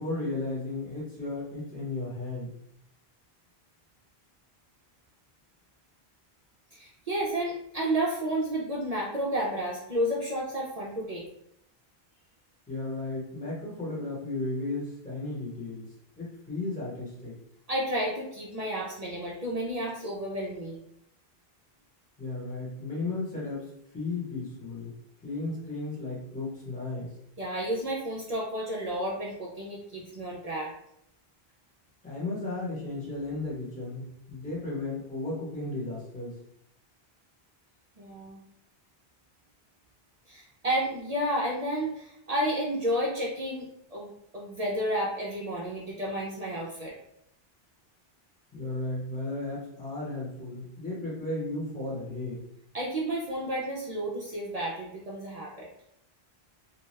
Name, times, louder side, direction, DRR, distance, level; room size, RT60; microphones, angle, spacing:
voice 1, 0.0-2.5 12.7-15.9 16.2-17.3 22.2-25.0 25.2-27.1 32.0-36.3 48.5-52.4, left 2 dB, 10° left, -7 dB, 0.9 m, -34 dB
voice 2, 6.7-11.2 17.7-20.8 27.4-30.7 38.0-38.4 40.3-46.9 52.7-55.7, right 1 dB, 50° right, -4 dB, 0.5 m, -31 dB
2.7 x 2.2 x 3.1 m, 0.77 s
omnidirectional pair, 1.1 m